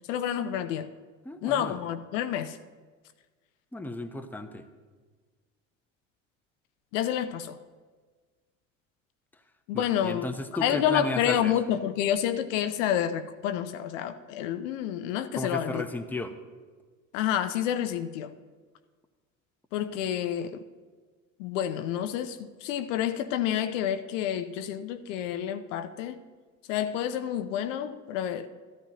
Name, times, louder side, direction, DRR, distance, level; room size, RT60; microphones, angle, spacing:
voice 1, 0.1-0.9 1.4-2.6 6.9-7.6 9.7-10.3 10.6-15.9 17.1-18.3 19.7-20.6 21.4-26.2 26.7-28.5, left 10 dB, 65° left, 0.7 m, -29 dB
voice 2, 1.2-1.8 3.7-4.6 9.7-11.5 15.3-16.4, left 2 dB, 5° left, 0.8 m, -34 dB
13.5 x 13.0 x 2.9 m
figure-of-eight pair, 65°, 40 cm